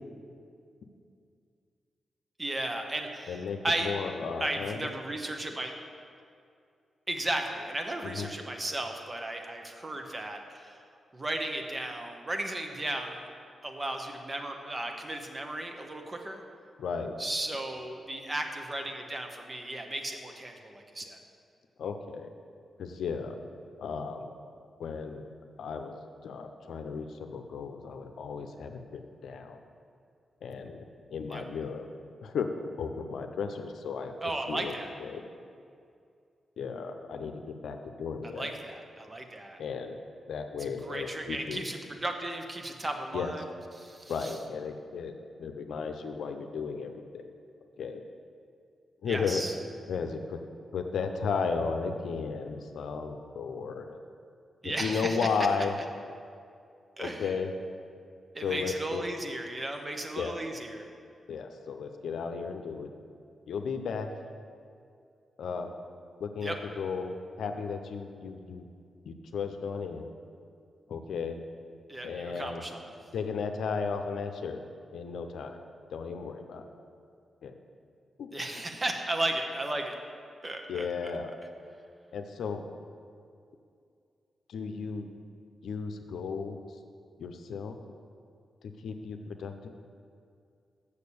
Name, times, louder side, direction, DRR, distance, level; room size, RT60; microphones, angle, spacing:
voice 1, 2.4-3.9 4.4-5.7 7.1-10.8 11.1-13.2 13.6-16.4 17.2-21.2 31.3-31.4 34.2-34.9 38.2-39.6 40.6-43.4 43.8-44.4 49.0-49.5 54.6-55.3 57.0-57.3 58.3-60.9 66.4-66.5 71.9-72.9 78.3-80.0 80.4-80.9, right 1 dB, 30° right, 4 dB, 1.1 m, -35 dB
voice 2, 3.3-4.8 8.0-8.3 16.8-17.2 21.8-22.3 22.8-23.4 23.8-24.3 24.8-25.3 25.6-26.0 26.2-29.6 30.4-30.9 31.1-31.9 32.2-32.5 32.8-34.1 34.5-34.7 35.0-35.3 36.6-38.5 39.6-40.0 40.3-41.7 43.1-43.3 44.1-47.3 47.8-48.0 49.0-49.4 49.9-50.4 50.7-54.0 54.6-55.7 57.0-57.5 58.4-59.0 60.2-60.4 61.3-62.9 63.5-64.1 65.4-65.7 66.2-68.7 69.1-70.1 70.9-71.4 72.0-72.6 73.1-74.6 74.9-75.6 75.9-76.7 77.4-77.6 78.2-78.3 80.7-81.3 82.1-82.6 84.5-85.1 85.6-86.6 87.2-87.8 88.8-89.7, left 5 dB, 80° left, 6 dB, 0.6 m, -34 dB
6.9 x 6.6 x 7.0 m, 2.4 s
cardioid pair, 60°, 0 cm